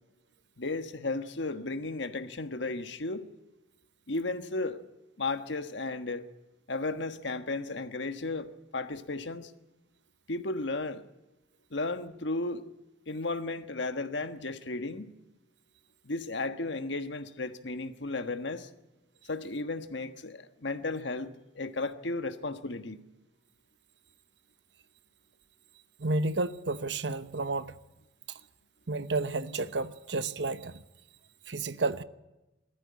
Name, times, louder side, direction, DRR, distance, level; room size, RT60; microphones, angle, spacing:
voice 1, 0.6-3.3 4.1-4.8 5.2-6.3 6.7-9.5 10.3-11.1 11.7-12.6 13.1-15.1 16.0-18.7 19.2-23.0, left 2 dB, 75° left, 1.4 m, -34 dB
voice 2, 26.0-27.7 28.9-30.8 31.5-32.0, right 3 dB, 70° right, 0.9 m, -31 dB
20.0 x 14.0 x 9.7 m
head